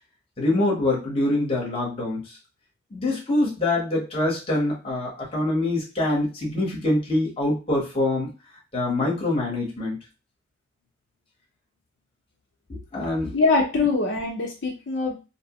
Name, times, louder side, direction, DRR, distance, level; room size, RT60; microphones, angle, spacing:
voice 1, 0.4-2.2 2.9-8.3 8.7-10.0 12.7-13.3, left 2 dB, 30° left, -4 dB, 1.0 m, -24 dB
voice 2, 13.3-15.2, left 3 dB, 70° left, -1 dB, 0.7 m, -23 dB
2.9 x 2.0 x 2.9 m, 0.30 s
head